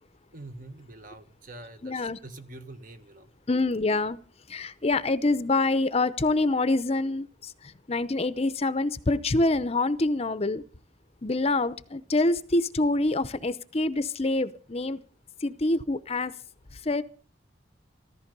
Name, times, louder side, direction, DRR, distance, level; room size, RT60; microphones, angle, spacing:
voice 1, 0.3-3.3, right 2 dB, 45° right, 1.4 m, -45 dB
voice 2, 1.8-2.2 3.5-4.2 4.5-10.6 11.2-15.0 15.4-16.3 16.7-17.0, left 2 dB, 35° left, 0.7 m, -26 dB
14.5 x 14.0 x 5.4 m
head